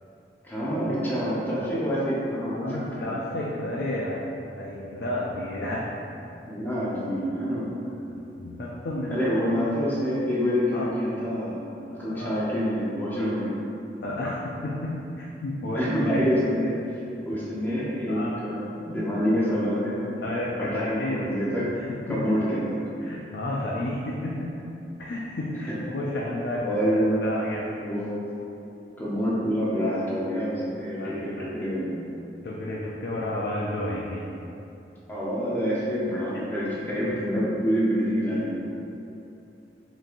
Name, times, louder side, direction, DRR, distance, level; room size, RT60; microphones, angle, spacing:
voice 1, 0.4-3.1 6.5-7.8 9.1-11.6 11.9-13.6 15.7-20.0 20.6-21.7 22.1-22.9 25.7-25.8 26.6-27.1 27.8-28.1 29.0-32.1 35.1-38.6, equal, 10° left, -8 dB, 0.8 m, -27 dB
voice 2, 2.6-4.2 4.6-5.9 8.1-9.2 10.7-10.9 12.1-12.3 14.0-15.8 16.1-16.2 18.1-18.4 20.2-21.3 21.7-21.8 22.1-22.2 23.0-24.6 25.0-27.8 31.0-31.5 32.4-34.2 38.3-38.4, left 1 dB, 65° left, -4 dB, 0.4 m, -31 dB
5.2 x 3.0 x 2.5 m, 2.8 s
head